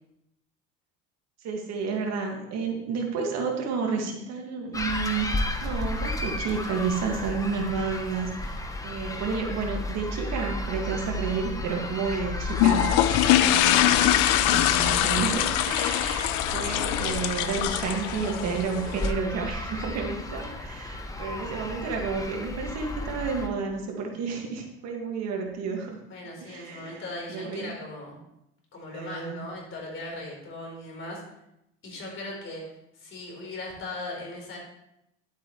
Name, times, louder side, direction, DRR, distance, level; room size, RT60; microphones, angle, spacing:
voice 1, 1.4-5.3 5.6-12.9 13.3-26.0 26.4-27.0 27.3-27.7 28.9-29.5, right 5 dB, 60° right, 1 dB, 2.1 m, -31 dB
sound 1, 4.7-23.5, left 2 dB, 10° left, 1.0 m, -33 dB
sound 2, 12.5-19.1, left 12 dB, 80° left, 0.7 m, -23 dB
voice 2, 18.9-19.4 26.1-28.2 28.7-31.2 31.8-32.6 32.9-34.6, left 2 dB, 45° left, -1 dB, 4.2 m, -38 dB
11.5 x 8.1 x 3.2 m, 0.83 s
cardioid pair, 110°, 29 cm